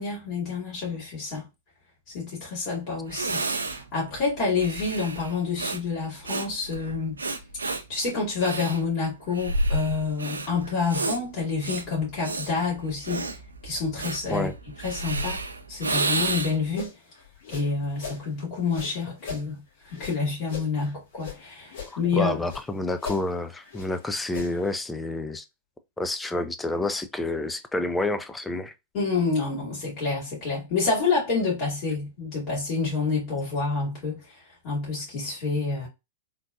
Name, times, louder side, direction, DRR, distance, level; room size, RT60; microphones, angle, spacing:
voice 1, 0.0-1.5 2.1-7.2 7.9-13.3 13.6-14.5 14.8-15.4 15.7-16.9 17.5-19.6 19.9-22.3 28.9-34.2 34.6-35.9, left 4 dB, 35° left, 2.1 m, -28 dB
Breathing, 2.7-2.8 3.1-16.7, right 2 dB, 80° right, 0.4 m, -31 dB
sound 1, 16.1-18.2 18.6-21.4 21.7-22.7 23.0-24.8, left 6 dB, 55° left, 1.3 m, -40 dB
voice 2, 22.1-25.4 26.0-28.7, left 2 dB, 10° left, 0.4 m, -29 dB
3.7 x 2.6 x 2.4 m
figure-of-eight pair, 100°, 0 cm